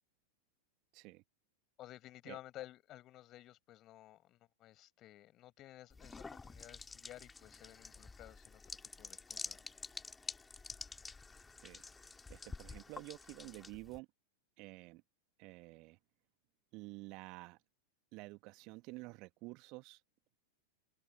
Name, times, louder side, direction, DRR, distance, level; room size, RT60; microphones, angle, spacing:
voice 1, 1.8-8.6 9.0-9.7, left 14 dB, 35° left, 5.1 m, -54 dB
sound 1, 5.9-14.0, left 4 dB, 10° left, 2.8 m, -49 dB
voice 2, 11.6-14.1 14.6-15.0 15.4-16.0 16.7-17.6 18.1-20.0, right 25 dB, 40° right, 1.6 m, -50 dB
figure-of-eight pair, 90°, 0 cm